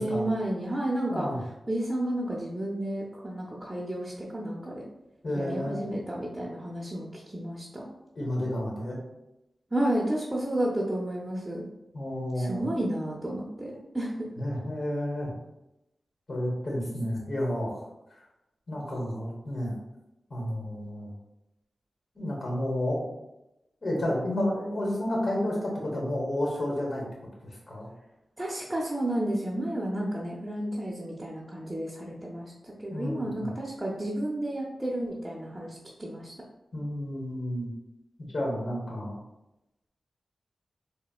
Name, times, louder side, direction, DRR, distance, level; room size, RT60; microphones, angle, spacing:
voice 1, 0.0-1.3 1.7-4.8 5.3-7.8 9.7-11.6 12.4-14.3 28.4-36.3, right 1 dB, 15° right, -5 dB, 0.6 m, -31 dB
voice 2, 1.1-1.4 5.2-5.8 8.1-9.0 11.9-12.6 14.4-15.3 16.3-17.8 18.7-19.8 20.3-21.1 22.1-23.0 23.8-27.0 27.4-27.9 32.9-33.5 36.7-37.7 38.2-39.2, left 1 dB, 60° left, -2 dB, 1.2 m, -31 dB
3.9 x 2.1 x 2.4 m, 0.92 s
cardioid pair, 45°, 0 cm